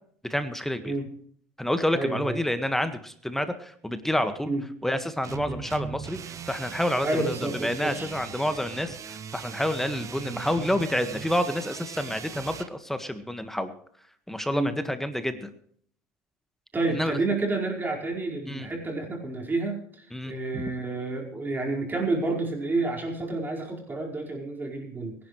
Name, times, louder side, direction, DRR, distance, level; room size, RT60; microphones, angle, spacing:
voice 1, 0.3-0.9 1.6-4.5 4.8-13.7 14.3-15.5 16.9-17.2 18.5-18.7 20.1-20.6, left 1 dB, 5° left, 9 dB, 1.6 m, -29 dB
voice 2, 1.9-2.4 4.5-4.6 5.5-5.6 7.0-8.1 14.5-14.7 16.7-25.2, right 2 dB, 25° right, 0 dB, 4.8 m, -29 dB
sound 1, 5.2-12.7, right 7 dB, 40° right, 1.2 m, -39 dB
24.0 x 11.0 x 3.2 m, 0.62 s
hypercardioid pair, 80°, 8 cm